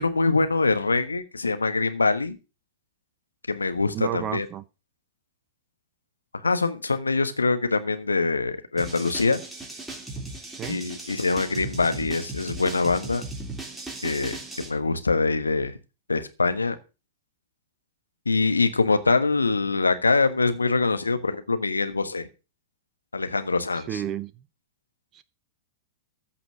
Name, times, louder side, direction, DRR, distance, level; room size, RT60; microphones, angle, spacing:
voice 1, 0.0-2.4 3.5-4.5 6.3-9.4 10.7-13.2 14.0-14.4 14.6-15.8 16.1-16.7 18.2-22.3 23.1-24.0, left 3 dB, 85° left, 1.3 m, -24 dB
voice 2, 3.9-4.6 10.5-10.9 23.7-24.3 25.1-25.2, right 11 dB, 30° right, 0.7 m, -32 dB
sound 1, 8.8-14.7, right 2 dB, 5° right, 3.1 m, -37 dB
14.5 x 5.9 x 6.3 m
figure-of-eight pair, 100°, 0 cm